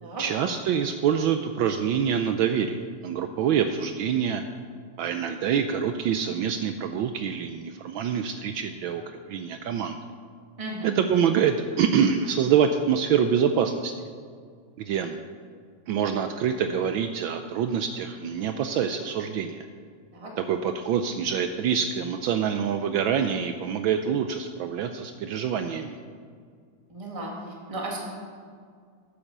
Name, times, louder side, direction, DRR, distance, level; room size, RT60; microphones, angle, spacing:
voice 1, 0.2-4.4 5.0-9.0 9.3-10.0 10.8-14.1 14.8-15.2 15.9-19.6 20.4-26.0, right 7 dB, 75° right, 7 dB, 1.3 m, -26 dB
voice 2, 26.9-27.3 27.7-28.0, right 2 dB, 15° right, -2 dB, 2.0 m, -34 dB
12.0 x 8.7 x 6.7 m, 2.1 s
omnidirectional pair, 2.4 m